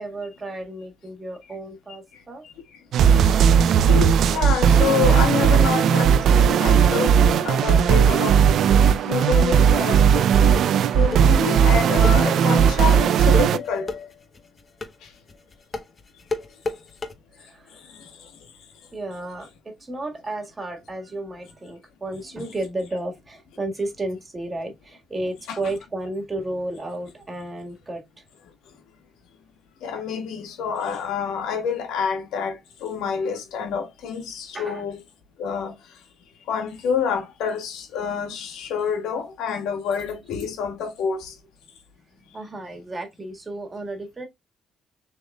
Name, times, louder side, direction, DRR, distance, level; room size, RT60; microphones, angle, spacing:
voice 1, 0.0-2.5 17.4-17.9 18.9-28.3 34.5-34.8 42.2-44.3, right 2 dB, 25° right, 1.7 m, -33 dB
sound 1, 2.9-13.6, right 7 dB, 70° right, 0.4 m, -17 dB
voice 2, 3.7-8.4 9.0-10.1 10.9-14.1 15.0-15.1 17.7-18.3 25.5-25.6 29.8-35.0 35.4-35.7 36.5-41.3, left 6 dB, 90° left, 1.3 m, -27 dB
sound 2, 9.7-17.1, left 3 dB, 35° left, 0.9 m, -32 dB
6.3 x 3.5 x 2.3 m
cardioid pair, 90°, 0 cm